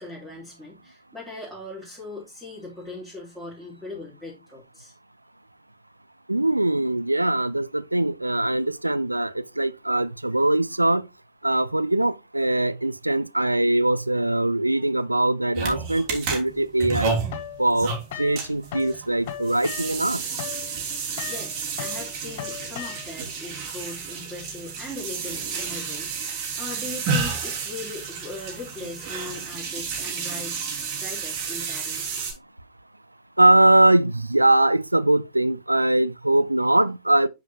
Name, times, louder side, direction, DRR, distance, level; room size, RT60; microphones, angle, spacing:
voice 1, 0.0-4.9 21.2-30.6 31.0-32.1, left 2 dB, ahead, 3.6 m, -39 dB
voice 2, 6.3-11.0 11.4-17.1 17.6-17.9 18.2-20.2 33.4-37.3, right 1 dB, 85° right, 0.5 m, -21 dB
sound 1, 15.5-32.3, right 5 dB, 45° right, 3.2 m, -31 dB
sound 2, 17.3-19.0 19.2-23.3, left 10 dB, 50° left, 1.1 m, -37 dB
9.8 x 5.1 x 2.9 m
figure-of-eight pair, 90°, 0 cm